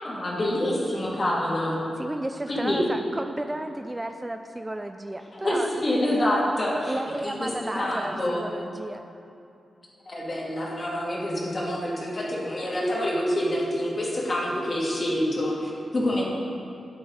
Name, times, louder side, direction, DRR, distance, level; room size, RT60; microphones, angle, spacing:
voice 1, 0.0-1.8 2.5-2.8 5.3-6.9 7.2-8.4 10.1-16.2, left 1 dB, 40° left, -5 dB, 2.7 m, -27 dB
voice 2, 2.0-5.7 6.9-9.0, right 1 dB, 20° right, 7 dB, 0.5 m, -33 dB
13.5 x 8.5 x 4.1 m, 2.6 s
cardioid pair, 65°, 0 cm